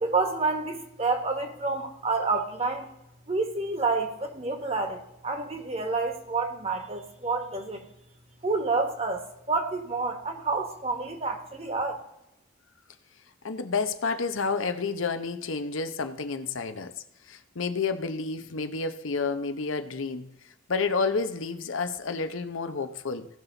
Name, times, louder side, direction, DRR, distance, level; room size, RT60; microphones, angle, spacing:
voice 1, 0.0-2.9 3.3-7.9 8.4-12.0, right 3 dB, 30° right, 1.3 m, -29 dB
voice 2, 13.4-16.9 17.3-20.3 20.7-23.3, left 4 dB, 85° left, 0.8 m, -30 dB
17.0 x 5.8 x 3.9 m
head